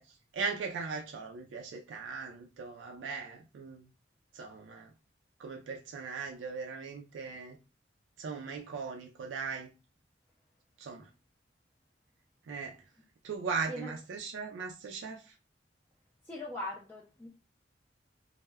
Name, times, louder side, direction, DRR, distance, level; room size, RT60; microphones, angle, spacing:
voice 1, 0.0-3.9 4.3-4.9 5.4-7.6 8.2-9.7 10.8-11.1 12.5-12.8 13.2-15.3, right 5 dB, 85° right, 0.3 m, -39 dB
voice 2, 16.2-17.3, left 1 dB, 10° left, 0.4 m, -40 dB
2.1 x 2.0 x 3.3 m
head